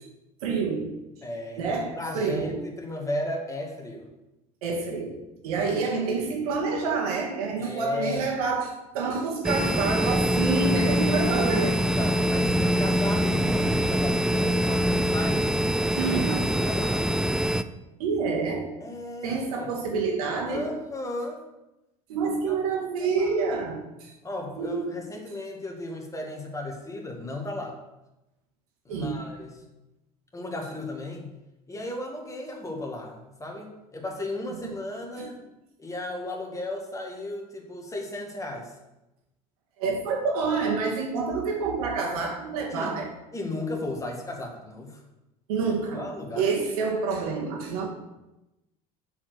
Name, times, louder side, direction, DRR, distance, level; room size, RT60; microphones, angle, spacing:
voice 1, 0.4-1.0 1.6-2.7 4.6-11.8 16.0-16.5 18.0-18.7 19.2-20.8 22.1-24.1 24.6-25.0 28.9-29.2 35.2-35.3 39.8-43.1 45.5-46.1 46.4-47.9, right 4 dB, 80° right, 0 dB, 2.0 m, -28 dB
voice 2, 1.2-4.1 7.6-8.3 11.1-15.5 16.1-17.1 18.8-19.7 20.5-21.4 22.5-22.6 23.0-23.3 24.2-27.8 28.9-29.5 30.3-31.3 31.7-35.4 35.8-38.7 42.7-43.0 43.3-45.0 45.9-46.5, left 1 dB, 15° left, 1 dB, 2.0 m, -35 dB
sound 1, 9.4-17.6, equal, 5° right, 0.3 m, -24 dB
7.0 x 4.7 x 6.4 m, 0.97 s
hypercardioid pair, 85°, 19 cm